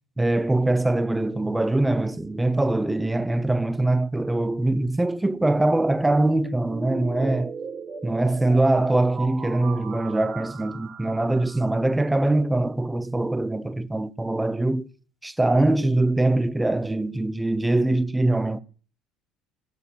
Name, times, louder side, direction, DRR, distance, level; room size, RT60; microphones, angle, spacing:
voice 1, 0.2-7.5 8.0-14.9 15.2-18.6, right 2 dB, 5° right, 0.7 m, -23 dB
sound 1, 6.6-11.7, right 6 dB, 25° right, 1.6 m, -37 dB
18.0 x 7.1 x 8.4 m
cardioid pair, 170°, 0 cm